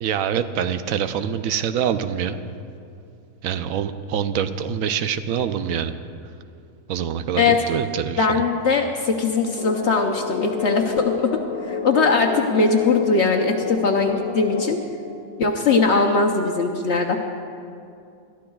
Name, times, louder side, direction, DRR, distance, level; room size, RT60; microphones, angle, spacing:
voice 1, 0.0-2.4 3.4-5.9 6.9-8.4, right 8 dB, 70° right, 10 dB, 1.0 m, -25 dB
voice 2, 8.2-11.4 11.7-14.8 15.4-17.2, left 4 dB, 60° left, 2 dB, 0.9 m, -20 dB
sound 1, 9.6-14.7, left 5 dB, 75° left, 1.3 m, -28 dB
21.5 x 13.0 x 2.3 m, 2.4 s
omnidirectional pair, 1.5 m